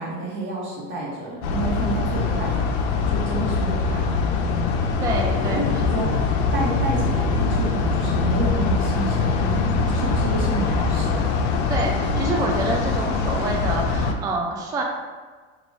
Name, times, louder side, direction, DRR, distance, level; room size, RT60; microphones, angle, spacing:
voice 1, 0.0-2.6 3.1-4.0 5.2-6.3 6.5-11.2, right 2 dB, 40° right, -6 dB, 1.2 m, -29 dB
sound 1, 1.4-14.1, left 4 dB, 75° left, 0.5 m, -23 dB
voice 2, 5.0-5.8 11.7-14.8, right 2 dB, 15° right, 0 dB, 0.3 m, -27 dB
3.2 x 2.6 x 4.0 m, 1.4 s
supercardioid pair, 110°, 30 cm